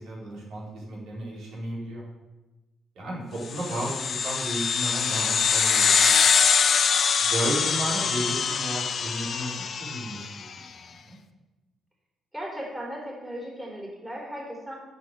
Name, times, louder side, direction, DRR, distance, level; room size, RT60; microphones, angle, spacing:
voice 1, 0.0-2.0 3.0-6.2 7.2-11.2, right 1 dB, 75° right, -5 dB, 4.2 m, -34 dB
sound 1, 3.5-10.3, left 6 dB, 50° left, 0.8 m, -23 dB
voice 2, 12.3-14.7, equal, 10° right, -2 dB, 3.9 m, -36 dB
8.4 x 7.0 x 7.9 m, 1.1 s
cardioid pair, 90°, 0 cm